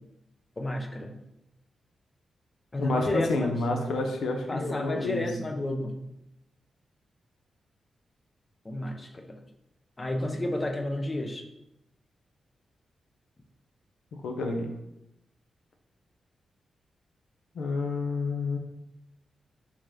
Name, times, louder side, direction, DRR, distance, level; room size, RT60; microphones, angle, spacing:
voice 1, 0.6-1.2 2.7-3.6 4.5-6.0 8.6-9.4 10.0-11.5, left 1 dB, 25° left, 4 dB, 0.5 m, -31 dB
voice 2, 2.8-5.2 14.2-14.7 17.5-18.6, left 3 dB, 90° left, 3 dB, 0.5 m, -29 dB
3.6 x 2.8 x 3.3 m, 0.88 s
cardioid pair, 90°, 0 cm